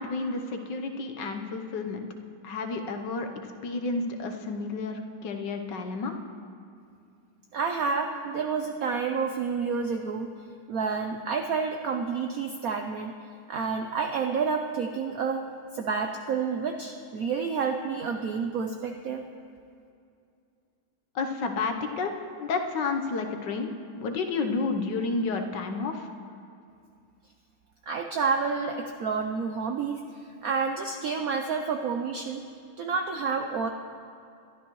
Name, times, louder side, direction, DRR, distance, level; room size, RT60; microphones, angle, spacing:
voice 1, 0.0-2.1 2.4-3.3 3.6-6.1 21.1-22.1 22.4-26.1, left 4 dB, 65° left, 5 dB, 1.5 m, -31 dB
voice 2, 7.5-10.3 10.7-13.1 13.5-15.4 15.7-19.2 27.9-30.0 30.4-32.4 32.8-33.7, right 5 dB, 70° right, 4 dB, 0.8 m, -29 dB
22.0 x 12.5 x 3.1 m, 2.5 s
omnidirectional pair, 2.2 m